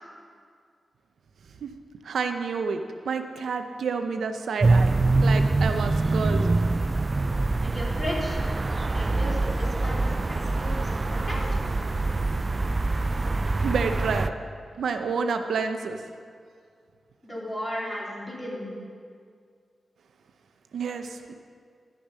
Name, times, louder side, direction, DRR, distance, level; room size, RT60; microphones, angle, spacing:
voice 1, 2.0-2.8 3.1-4.9 5.2-6.6 13.6-14.3 14.8-16.0 20.7-21.3, right 5 dB, 85° right, 6 dB, 0.6 m, -29 dB
sound 1, 4.6-14.3, right 2 dB, 35° right, 0.3 m, -24 dB
voice 2, 7.6-8.4 8.9-11.5 17.2-18.7, left 1 dB, 20° left, -5 dB, 3.1 m, -35 dB
11.5 x 6.8 x 5.5 m, 2.2 s
cardioid pair, 70°, 0 cm